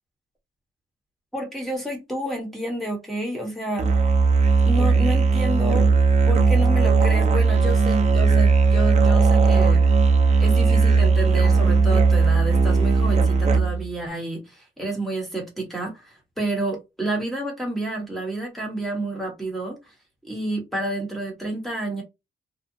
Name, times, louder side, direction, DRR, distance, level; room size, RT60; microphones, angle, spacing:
voice 1, 1.3-3.9 4.6-6.0 6.3-9.8 10.4-19.9 20.2-22.0, right 1 dB, ahead, 1.1 m, -29 dB
Musical instrument, 3.8-13.9, right 4 dB, 35° right, 0.5 m, -18 dB
2.7 x 2.2 x 2.6 m
wide cardioid pair, 140°, 20 cm